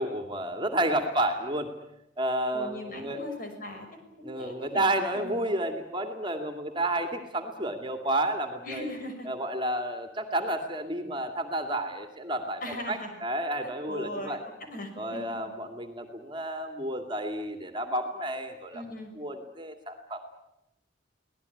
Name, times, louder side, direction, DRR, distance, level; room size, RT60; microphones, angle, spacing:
voice 1, 0.0-1.7 2.2-3.2 4.2-8.9 9.2-14.4 15.0-18.8 19.2-20.3, right 1 dB, 25° right, 6 dB, 2.5 m, -31 dB
voice 2, 2.5-3.9 4.2-5.4 8.6-9.3 12.6-13.2 13.6-14.4 14.7-15.5 18.7-19.1, left 1 dB, 50° left, 5 dB, 6.1 m, -39 dB
24.5 x 18.0 x 9.9 m, 0.82 s
head